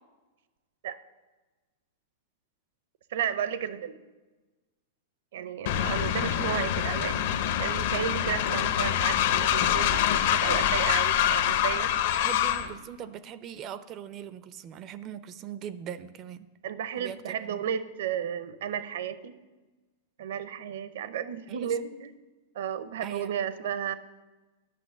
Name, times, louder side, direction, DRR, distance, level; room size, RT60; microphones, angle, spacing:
voice 1, 3.1-4.0 5.3-7.3 7.6-11.9 16.6-19.4 20.2-22.1 22.5-23.9, right 9 dB, 70° right, 14 dB, 0.7 m, -33 dB
Train, 5.7-12.7, left 10 dB, 55° left, 0.6 m, -25 dB
voice 2, 12.2-16.5 17.0-17.6 21.5-21.7 23.0-23.3, right 9 dB, 25° right, 15 dB, 0.4 m, -41 dB
9.9 x 5.9 x 7.1 m, 1.2 s
supercardioid pair, 165°, 0 cm